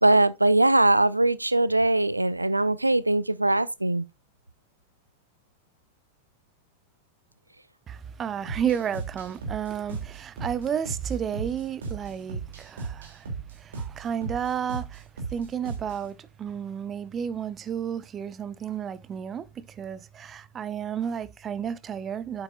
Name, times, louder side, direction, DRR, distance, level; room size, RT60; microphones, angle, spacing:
voice 1, 0.0-4.0, right 2 dB, 85° right, 0.3 m, -21 dB
voice 2, 7.9-13.3 13.6-15.0 15.3-22.4, right 8 dB, 25° right, 0.6 m, -32 dB
sound 1, 8.5-16.1, right 4 dB, 65° right, 2.6 m, -37 dB
8.8 x 8.1 x 2.4 m
figure-of-eight pair, 90°, 0 cm